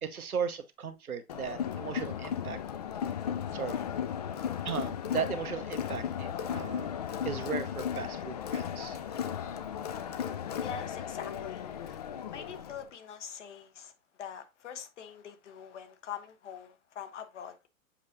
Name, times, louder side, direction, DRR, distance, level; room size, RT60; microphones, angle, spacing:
voice 1, 0.0-2.6 3.5-3.8 4.6-7.0 7.2-9.0, right 7 dB, 80° right, 0.9 m, -36 dB
Crowd, 1.3-12.8, left 8 dB, 30° left, 0.4 m, -35 dB
voice 2, 10.6-13.9 14.2-17.7, left 8 dB, 55° left, 1.2 m, -44 dB
7.3 x 5.1 x 2.6 m
figure-of-eight pair, 110°, 43 cm